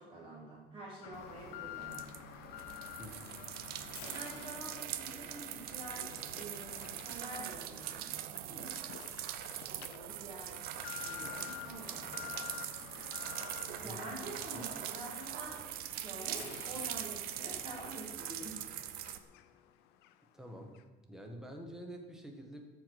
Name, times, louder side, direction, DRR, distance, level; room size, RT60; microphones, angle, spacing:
voice 1, 0.0-2.2 4.0-8.1 8.4-8.8 9.7-12.4 13.8-18.6, right 1 dB, 30° right, -4 dB, 1.7 m, -48 dB
Alarm, 1.0-19.7 20.0-20.1 20.7-20.8, left 12 dB, 90° left, 0.7 m, -50 dB
sound 1, 1.1-19.2, right 12 dB, 70° right, 0.6 m, -42 dB
voice 2, 3.0-3.4 13.8-14.0 14.5-14.6 20.3-20.7 21.1-22.6, equal, 5° right, 3 dB, 1.1 m, -47 dB
13.0 x 4.6 x 6.3 m, 1.3 s
cardioid pair, 175°, 16 cm